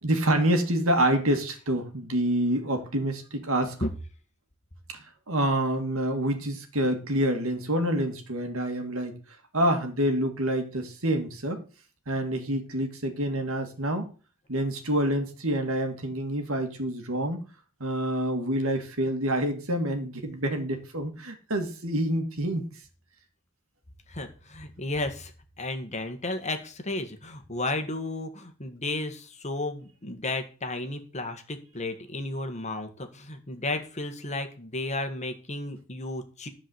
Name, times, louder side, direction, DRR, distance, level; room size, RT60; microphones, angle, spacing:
voice 1, 0.0-3.8 4.9-9.2 9.5-11.6 12.1-14.1 14.5-17.5 17.8-22.7, right 1 dB, 65° right, 5 dB, 2.4 m, -27 dB
voice 2, 24.1-25.3 25.6-36.5, left 2 dB, 30° left, 7 dB, 1.8 m, -33 dB
13.5 x 5.0 x 8.0 m, 0.37 s
head